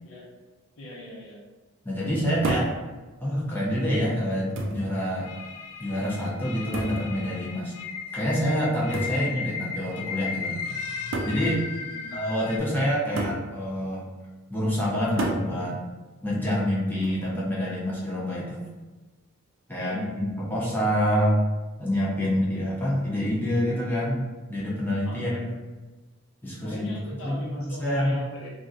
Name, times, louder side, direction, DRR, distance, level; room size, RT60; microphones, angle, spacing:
voice 1, 0.8-1.4 9.0-9.1 11.8-12.1 19.8-20.1 25.0-25.4 26.6-28.5, equal, 60° left, -4 dB, 0.8 m, -39 dB
voice 2, 1.8-2.7 3.2-5.3 5.8-7.7 8.1-10.6 11.2-11.7 12.1-14.1 14.5-15.9 16.2-18.6 19.7-21.4 21.8-25.5 26.4-26.9 27.3-28.2, equal, 10° left, -6 dB, 0.5 m, -27 dB
sound 1, 2.4-2.8 3.8-3.9 4.6-4.9 6.7-7.1 8.9-9.2 10.3-10.4 11.1-11.4 13.2-13.5 15.2-15.5 17.0-17.4, right 2 dB, 55° right, 0.4 m, -30 dB
sound 2, 5.2-12.6, left 6 dB, 80° left, 0.3 m, -36 dB
3.0 x 2.4 x 2.6 m, 1.2 s
head